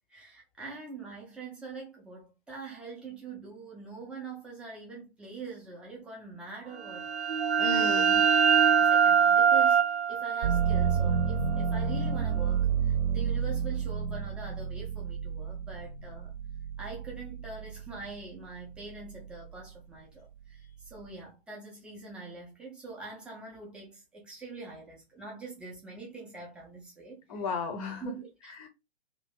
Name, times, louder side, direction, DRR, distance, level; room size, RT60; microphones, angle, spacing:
voice 1, 0.1-7.3 7.6-8.1 8.5-9.8 10.1-16.4 16.8-27.4 28.0-28.6, right 3 dB, 5° right, 0.5 m, -44 dB
sound 1, 6.8-12.3, right 7 dB, 75° right, 0.5 m, -24 dB
voice 2, 7.6-8.2 27.3-28.1 28.6-28.7, left 4 dB, 35° left, 0.7 m, -34 dB
sound 2, 10.4-18.2 18.7-19.5, right 7 dB, 40° right, 0.8 m, -30 dB
2.7 x 2.5 x 3.5 m
figure-of-eight pair, 125°, 32 cm